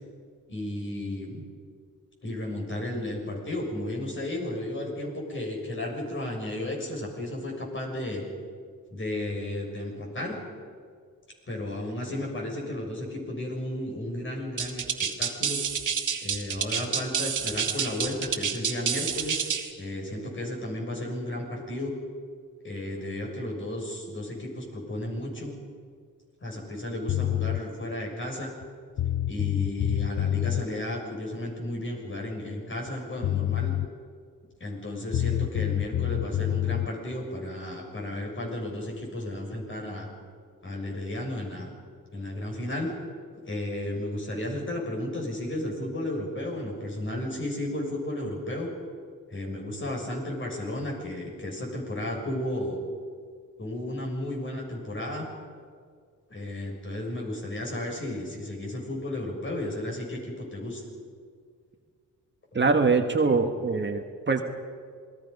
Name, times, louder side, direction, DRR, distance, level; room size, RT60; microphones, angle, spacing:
voice 1, 0.5-1.4 2.2-8.2 8.9-10.4 11.5-14.8 15.2-15.6 16.2-21.9 22.6-25.5 26.4-28.5 29.3-33.7 34.6-40.1 40.6-41.7 42.1-42.9 43.5-48.7 49.3-52.8 53.6-55.3 56.3-60.8, left 1 dB, 35° left, -1 dB, 6.6 m, -33 dB
sound 1, 14.6-19.7, right 7 dB, 65° right, 2.2 m, -28 dB
sound 2, 27.1-27.6 28.6-28.7 29.0-30.6 32.9-33.0 33.2-33.9 35.1-36.9, left 13 dB, 55° left, 0.5 m, -27 dB
voice 2, 62.5-64.4, right 4 dB, 35° right, 5 dB, 1.6 m, -23 dB
28.0 x 20.0 x 5.5 m, 2.1 s
cardioid pair, 100°, 32 cm